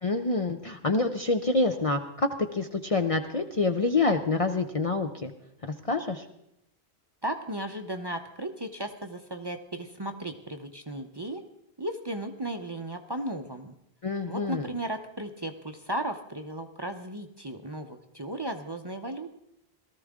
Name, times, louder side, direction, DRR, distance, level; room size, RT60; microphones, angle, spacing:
voice 1, 0.0-5.3 5.6-6.2 14.0-14.7, left 3 dB, 40° left, 5 dB, 0.7 m, -27 dB
voice 2, 7.2-11.4 11.8-13.7 14.3-19.3, right 1 dB, 25° right, 6 dB, 0.7 m, -35 dB
18.0 x 13.5 x 3.6 m, 0.80 s
omnidirectional pair, 1.1 m